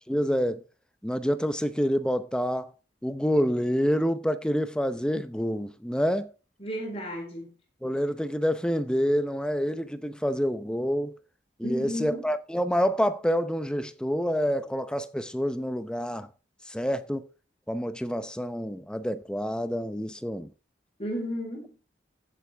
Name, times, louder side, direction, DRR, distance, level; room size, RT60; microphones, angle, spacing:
voice 1, 0.1-0.6 1.0-2.7 3.0-6.3 7.8-11.2 11.6-16.3 16.7-17.3 17.7-20.5, equal, 5° left, 0.7 m, -27 dB
voice 2, 6.6-7.5 11.6-12.3 21.0-21.7, equal, 30° left, 4.3 m, -33 dB
15.0 x 8.4 x 3.5 m
head